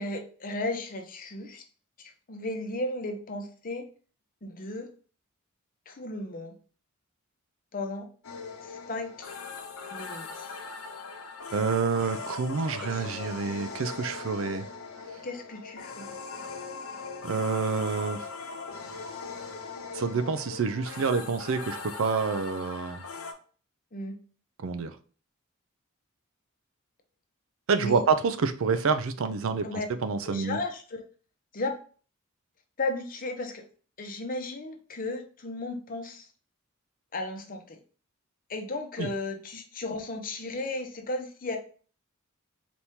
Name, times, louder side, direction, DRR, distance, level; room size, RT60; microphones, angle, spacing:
voice 1, 0.0-1.6 2.0-3.9 4.4-4.9 5.9-6.6 7.7-8.1 8.6-9.3 9.9-10.6 12.8-13.3 15.2-16.2 23.9-24.2 27.8-28.0 29.6-29.9 30.2-31.0 31.5-31.8 32.8-33.6 34.0-36.3 37.1-37.8 38.5-41.6, left 2 dB, 40° left, 0.7 m, -35 dB
sound 1, 8.2-23.3, left 4 dB, 85° left, 0.9 m, -40 dB
voice 2, 11.5-14.7 17.2-18.3 19.9-23.0 24.6-25.0 27.7-30.6 39.0-39.1, right 5 dB, 65° right, 0.4 m, -28 dB
4.2 x 3.5 x 2.8 m
head